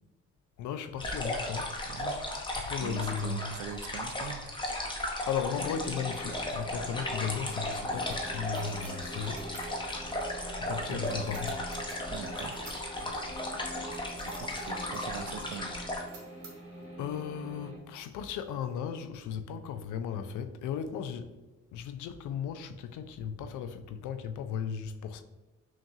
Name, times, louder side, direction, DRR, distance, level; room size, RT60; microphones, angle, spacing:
voice 1, 0.6-1.8 2.6-3.6 5.2-9.5 10.5-11.5 13.1-13.4 17.0-21.3 21.7-25.2, left 7 dB, 80° left, 0.5 m, -36 dB
sound 1, 1.0-16.0, left 1 dB, 15° left, 0.8 m, -36 dB
voice 2, 1.9-2.2 2.8-4.4 10.9-11.2 12.1-12.6 14.2-15.8, right 7 dB, 55° right, 0.4 m, -42 dB
sound 2, 5.5-17.8, right 1 dB, 20° right, 1.5 m, -45 dB
sound 3, 6.4-10.6 11.0-16.9 17.5-17.6 18.0-18.6, right 3 dB, 90° right, 1.1 m, -54 dB
5.8 x 2.3 x 2.7 m
cardioid pair, 90°, 30 cm